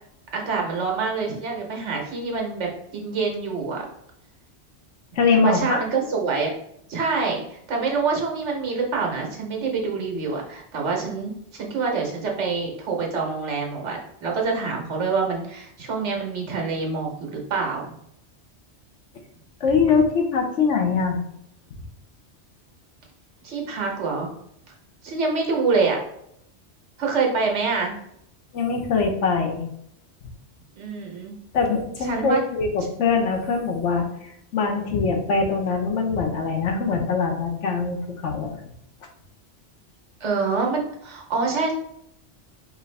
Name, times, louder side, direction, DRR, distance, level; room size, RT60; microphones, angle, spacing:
voice 1, 0.3-3.9 5.3-6.5 6.9-17.9 23.4-24.3 25.0-26.0 27.0-27.9 30.8-31.4 32.0-32.4 40.2-41.7, right 4 dB, 80° right, 0 dB, 1.4 m, -26 dB
voice 2, 5.1-5.8 19.6-21.2 28.5-29.6 31.5-38.6, left 5 dB, 85° left, 3 dB, 1.2 m, -23 dB
4.9 x 2.6 x 3.2 m, 0.75 s
omnidirectional pair, 1.2 m